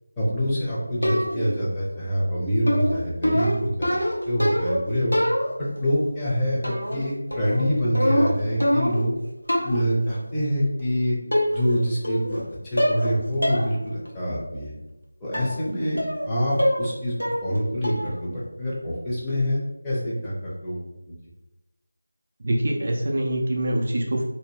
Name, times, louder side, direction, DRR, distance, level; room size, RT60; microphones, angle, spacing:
voice 1, 0.2-5.1 5.6-9.1 9.6-11.2 11.5-14.7 15.2-16.0 16.3-17.1 17.4-20.8 21.1-21.2, equal, 10° left, -9 dB, 0.6 m, -26 dB
sound 1, 1.0-1.6 2.7-4.8 5.1-5.8 6.6-7.0 7.3-9.1 9.5-9.9 10.8-10.9 11.3-11.8 12.0-12.4 12.8-13.1 13.4-13.7 14.1-14.2 15.3-15.6 16.0-16.3 16.6-16.9 17.2-17.6 17.8-18.2, equal, 90° left, 0.8 m, -24 dB
voice 2, 22.4-24.3, right 1 dB, 45° right, 0 dB, 0.4 m, -24 dB
2.7 x 2.1 x 3.1 m, 0.97 s
figure-of-eight pair, 165°, 0 cm